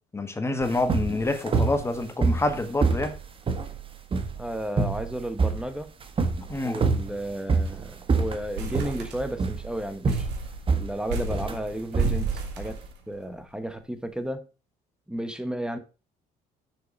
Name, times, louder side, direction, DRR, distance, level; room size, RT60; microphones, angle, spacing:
voice 1, 0.1-3.1 6.5-6.8, left 2 dB, 15° left, 1.5 m, -27 dB
sound 1, 0.6-12.8, right 4 dB, 30° right, 1.4 m, -27 dB
voice 2, 4.4-5.9 6.6-10.3 10.7-12.8 13.1-14.4 15.1-15.8, right 1 dB, 5° right, 1.1 m, -33 dB
sound 2, 6.6-6.8 7.1-7.2 7.5-7.8 8.2-9.6 10.0-13.3, right 2 dB, 85° right, 2.2 m, -35 dB
6.6 x 6.6 x 5.3 m
cardioid pair, 110°, 17 cm